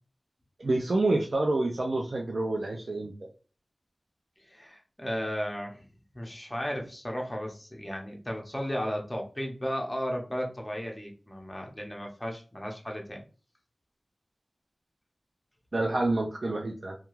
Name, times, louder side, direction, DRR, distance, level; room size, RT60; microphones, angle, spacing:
voice 1, 0.6-3.1 15.7-17.0, right 2 dB, 60° right, 1 dB, 0.4 m, -28 dB
voice 2, 4.5-5.8 6.1-13.2, equal, 15° left, 1 dB, 0.7 m, -34 dB
2.3 x 2.3 x 3.0 m, 0.36 s
wide cardioid pair, 75°, 0 cm